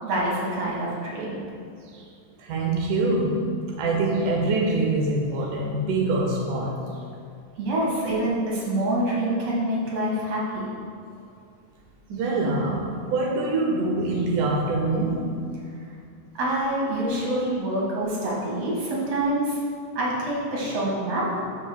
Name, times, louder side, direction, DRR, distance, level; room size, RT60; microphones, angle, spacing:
voice 1, 0.0-1.4 7.6-10.7 16.3-19.6 19.9-21.6, right 1 dB, 55° right, -5 dB, 2.8 m, -26 dB
voice 2, 2.4-6.8 12.1-15.3, right 2 dB, 90° right, -1 dB, 2.3 m, -24 dB
11.0 x 7.1 x 2.3 m, 2.3 s
omnidirectional pair, 3.4 m